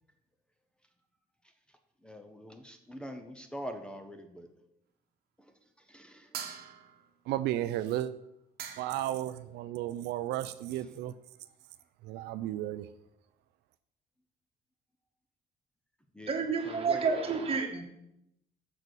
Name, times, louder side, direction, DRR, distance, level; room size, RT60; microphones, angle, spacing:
voice 1, 2.0-4.5 5.9-6.3 10.7-10.9 16.1-16.3 16.6-17.0, equal, 5° left, 7 dB, 0.7 m, -44 dB
sound 1, 6.3-7.2 8.2-8.3 8.6-9.2, right 8 dB, 70° right, 1.0 m, -42 dB
voice 2, 7.3-8.1 8.8-11.1 12.1-12.8, right 13 dB, 85° right, 12 dB, 0.4 m, -33 dB
voice 3, 16.3-17.9, right 5 dB, 35° right, 3 dB, 1.5 m, -30 dB
6.7 x 4.1 x 6.2 m, 0.82 s
cardioid pair, 110°, 17 cm